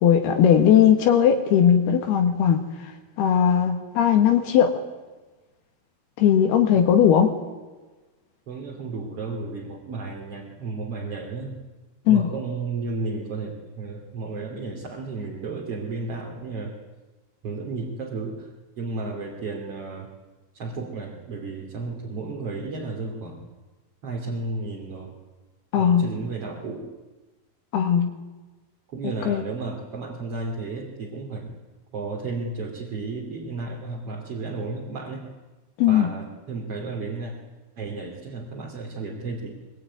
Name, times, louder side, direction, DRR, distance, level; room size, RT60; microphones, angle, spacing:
voice 1, 0.0-2.9 3.2-4.7 6.2-7.3 12.1-12.3 25.7-26.1 27.7-28.1 29.3-29.4 35.8-36.1, left 9 dB, 80° left, 4 dB, 3.6 m, -18 dB
voice 2, 8.5-11.6 12.1-16.7 17.4-18.5 18.8-20.1 20.5-23.5 24.0-25.1 25.7-26.9 28.9-31.6 31.9-35.3 35.9-37.3 37.8-39.6, right 3 dB, 40° right, -1 dB, 3.5 m, -33 dB
24.0 x 22.5 x 9.6 m, 1.2 s
omnidirectional pair, 4.5 m